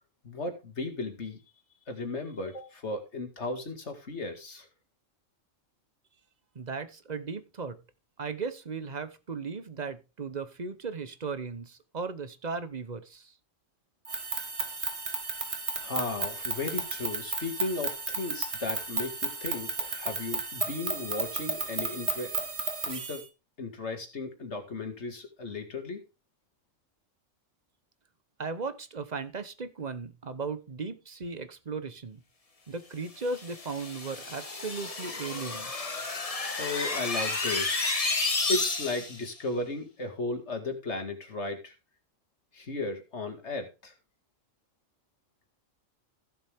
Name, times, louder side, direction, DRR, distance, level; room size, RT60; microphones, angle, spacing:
voice 1, 0.2-1.4 1.9-4.7 15.8-22.4 22.9-23.2 23.6-26.0 36.6-38.0 38.5-41.7 42.5-43.9, left 3 dB, 60° left, 5 dB, 2.4 m, -35 dB
voice 2, 6.5-7.8 8.2-13.3 28.4-32.2 32.7-35.7, right 4 dB, 35° right, 12 dB, 0.9 m, -36 dB
sound 1, 14.0-23.2, right 4 dB, 55° right, 1.7 m, -33 dB
sound 2, 33.3-39.2, left 3 dB, 30° left, 1.2 m, -31 dB
15.0 x 7.2 x 3.5 m, 0.28 s
omnidirectional pair, 1.3 m